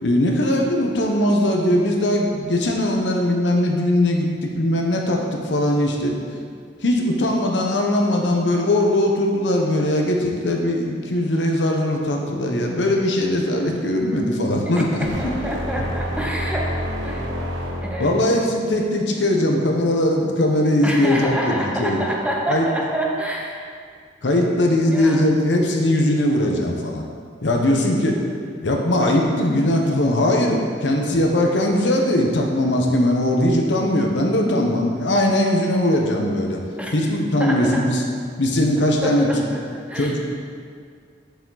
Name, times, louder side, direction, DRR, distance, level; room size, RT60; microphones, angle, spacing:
voice 1, 0.0-6.1 6.8-15.4 18.0-22.0 22.5-22.7 24.2-27.0 27.4-28.1 28.6-36.6 36.9-38.0 38.4-39.3 39.9-40.2, left 1 dB, 75° left, 1 dB, 0.9 m, -20 dB
voice 2, 14.8-16.7 17.0-17.3 17.8-18.2 20.8-23.6 24.8-25.2 36.8-36.9 37.4-37.8 39.0-39.6 39.9-40.2, right 1 dB, 5° right, -2 dB, 1.0 m, -27 dB
sound 1, 15.0-18.3, equal, 75° right, 1.2 m, -28 dB
7.1 x 6.7 x 3.9 m, 2.1 s
head